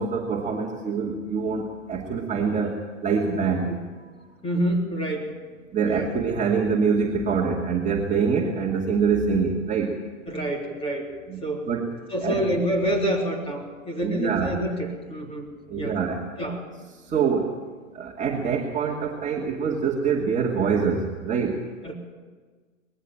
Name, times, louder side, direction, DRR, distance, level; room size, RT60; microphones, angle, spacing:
voice 1, 0.0-4.2 5.7-10.0 11.3-11.9 12.2-12.4 14.0-14.6 15.7-16.3 16.9-17.6 17.9-21.6, right 5 dB, 15° right, -2 dB, 2.4 m, -25 dB
voice 2, 4.4-5.3 5.8-6.1 10.3-11.1 11.4-11.7 12.1-15.5 15.8-16.0 16.4-16.7 21.8-21.9, right 1 dB, 15° left, 1 dB, 3.6 m, -27 dB
20.5 x 14.5 x 8.7 m, 1.4 s
hypercardioid pair, 125°, 41 cm